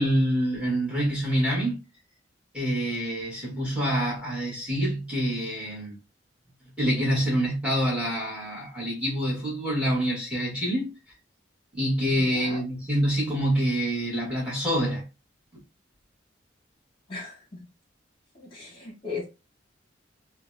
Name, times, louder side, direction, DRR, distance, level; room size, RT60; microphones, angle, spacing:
voice 1, 0.0-1.8 2.5-6.0 6.8-10.9 11.7-15.0, equal, 5° right, 1.5 m, -26 dB
voice 2, 12.3-12.6 17.1-17.4 18.3-19.3, left 4 dB, 25° left, 1.1 m, -37 dB
3.9 x 2.2 x 2.5 m
head